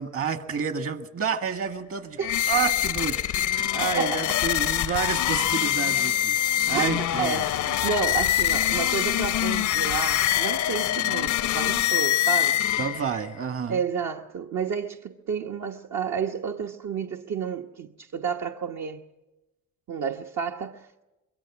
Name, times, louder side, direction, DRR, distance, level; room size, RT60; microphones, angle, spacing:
voice 1, 0.0-2.2 2.5-6.4 6.7-7.4 12.8-13.8, right 6 dB, 50° right, 1.8 m, -29 dB
sound 1, 2.2-13.3, left 12 dB, 75° left, 0.7 m, -24 dB
voice 2, 3.8-4.4 6.7-12.9 13.7-19.0 19.9-21.0, right 6 dB, 65° right, 1.2 m, -31 dB
26.0 x 22.0 x 6.1 m
cardioid pair, 90°, 30 cm